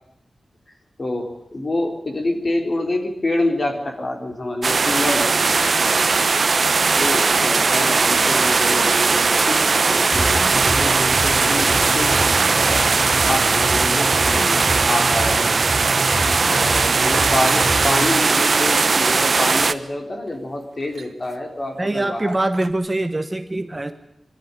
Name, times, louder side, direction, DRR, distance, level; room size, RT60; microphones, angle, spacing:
voice 1, 1.0-5.7 6.9-15.7 16.5-22.3, left 2 dB, 35° left, 3 dB, 3.8 m, -27 dB
sound 1, 4.6-19.7, right 4 dB, 50° right, 0.9 m, -18 dB
sound 2, 10.1-18.1, right 1 dB, 10° left, 3.0 m, -28 dB
sound 3, 11.9-12.4 13.1-13.5 14.3-15.0 15.7-16.4 17.2-17.7 18.4-18.9 19.4-19.7 20.3-20.4 20.6-21.5 21.9-22.0 22.2-22.7, right 5 dB, 85° right, 1.4 m, -39 dB
voice 2, 21.8-23.9, right 2 dB, 20° right, 8 dB, 1.2 m, -23 dB
23.5 x 13.0 x 9.8 m, 0.82 s
wide cardioid pair, 135°, 0 cm